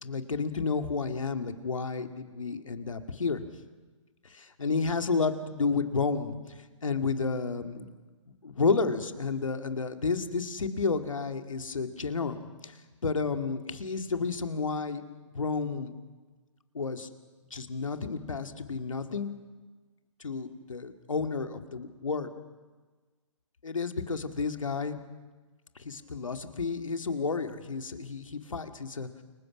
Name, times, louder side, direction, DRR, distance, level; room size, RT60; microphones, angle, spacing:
voice 1, 0.0-3.4 4.2-7.9 8.4-12.7 13.0-15.0 15.3-15.9 16.7-17.1 17.5-19.3 20.2-22.3 23.6-25.0 25.8-29.2, left 4 dB, 80° left, 7 dB, 2.4 m, -31 dB
29.5 x 23.0 x 6.3 m, 1.3 s
figure-of-eight pair, 125°, 17 cm